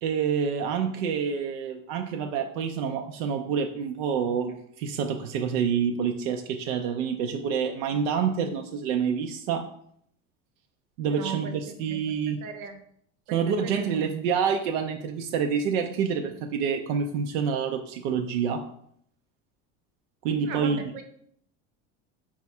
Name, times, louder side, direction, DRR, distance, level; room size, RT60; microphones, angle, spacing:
voice 1, 0.0-9.7 11.0-11.5 11.8-12.4 13.3-18.6 20.2-20.8, right 6 dB, 90° right, 4 dB, 0.5 m, -27 dB
voice 2, 11.1-11.6 11.9-12.0 12.4-12.8 13.3-14.0 20.5-21.0, right 6 dB, 60° right, 6 dB, 0.8 m, -37 dB
4.4 x 2.4 x 4.2 m, 0.68 s
supercardioid pair, 110°, 38 cm